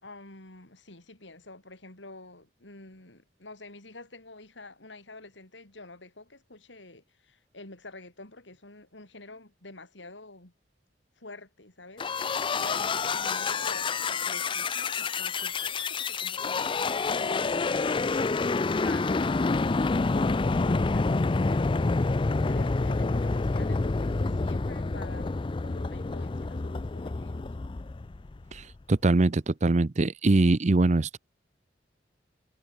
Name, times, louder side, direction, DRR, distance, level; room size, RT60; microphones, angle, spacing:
voice 1, 0.0-10.5 11.2-19.8 20.1-22.0 22.4-27.5, left 2 dB, 90° left, 4.6 m, -48 dB
sound 1, 12.0-28.6, left 3 dB, 30° left, 0.4 m, -28 dB
voice 2, 28.5-31.2, right 2 dB, 40° right, 0.6 m, -23 dB
head